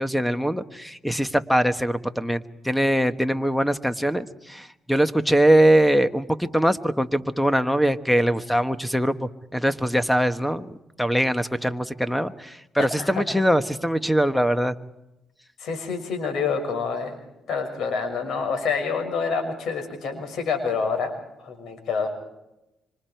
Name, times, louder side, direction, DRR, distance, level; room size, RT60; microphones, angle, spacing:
voice 1, 0.0-14.7, right 1 dB, ahead, 11 dB, 1.3 m, -22 dB
voice 2, 12.8-13.2 15.6-17.2 17.5-21.1 21.4-22.1, left 5 dB, 75° left, 5 dB, 6.2 m, -27 dB
26.0 x 25.5 x 4.6 m, 0.90 s
cardioid pair, 90°, 0 cm